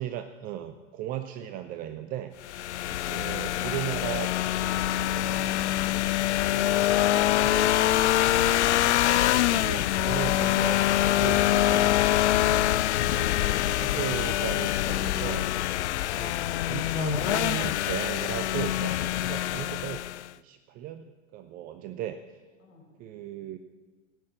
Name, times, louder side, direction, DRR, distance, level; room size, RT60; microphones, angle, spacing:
voice 1, 0.0-2.7 3.1-4.3 6.5-6.8 7.3-7.5 9.5-10.8 11.1-11.9 12.9-15.7 16.2-16.4 16.7-20.0 20.4-22.2 23.0-23.6, right 11 dB, 25° right, 9 dB, 0.5 m, -36 dB
sound 1, 2.4-20.3, left 13 dB, 65° left, 0.5 m, -25 dB
voice 2, 2.9-3.9 22.6-22.9, left 3 dB, 40° left, 0 dB, 5.0 m, -51 dB
16.5 x 6.4 x 7.8 m, 1.3 s
figure-of-eight pair, 105°, 38 cm